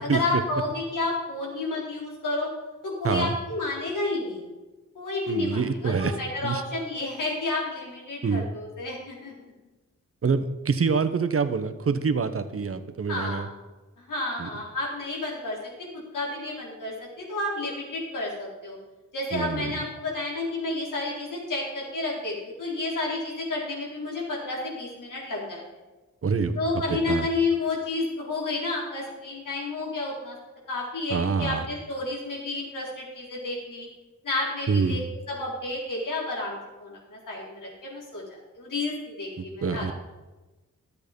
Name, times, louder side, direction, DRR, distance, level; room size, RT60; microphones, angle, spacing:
voice 1, 0.0-2.5 2.8-4.4 4.9-9.3 13.1-13.5 14.0-15.9 16.1-18.8 19.1-25.6 26.6-30.4 30.7-33.9 34.2-35.0 35.3-39.9, left 2 dB, 85° left, -4 dB, 4.2 m, -31 dB
voice 2, 3.0-3.3 5.3-6.2 6.4-6.6 8.2-8.5 10.2-13.5 14.4-14.5 19.3-19.8 26.2-26.6 26.9-27.3 31.1-31.7 34.7-35.1 39.4-39.9, right 5 dB, 45° right, 10 dB, 1.0 m, -26 dB
13.0 x 8.3 x 5.2 m, 1.1 s
wide cardioid pair, 95°, 31 cm